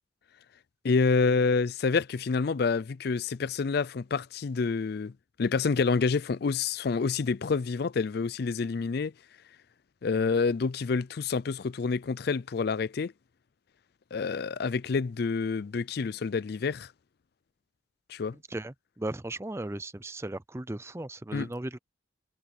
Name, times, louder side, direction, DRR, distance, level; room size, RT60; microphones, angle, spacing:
voice 1, 0.8-5.1 5.4-9.1 10.0-13.1 14.1-16.9 18.1-18.3 21.3-21.5, left 4 dB, 50° left, 0.4 m, -28 dB
voice 2, 18.5-21.8, right 1 dB, 15° right, 0.5 m, -36 dB
head